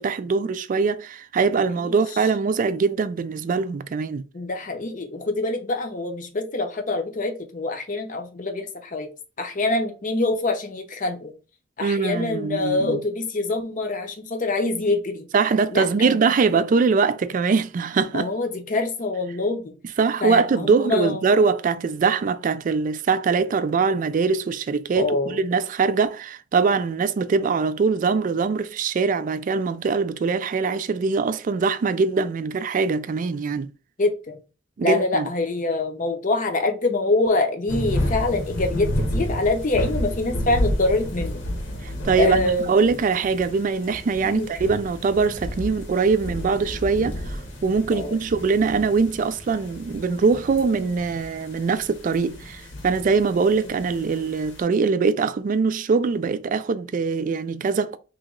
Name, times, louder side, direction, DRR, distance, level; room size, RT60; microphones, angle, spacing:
voice 1, 0.0-4.2 11.8-13.0 15.3-18.3 20.0-33.7 34.8-35.3 41.8-58.0, right 4 dB, 45° right, 0.3 m, -22 dB
voice 2, 4.3-9.1 9.4-11.3 11.8-15.3 15.7-16.2 18.1-19.7 20.2-21.2 24.9-25.4 34.0-34.4 34.8-41.4 42.2-42.7 44.2-44.5 47.9-48.1, left 2 dB, 45° left, 0.7 m, -25 dB
sound 1, 37.7-54.6, equal, 80° left, 1.2 m, -31 dB
3.0 x 2.9 x 3.7 m
head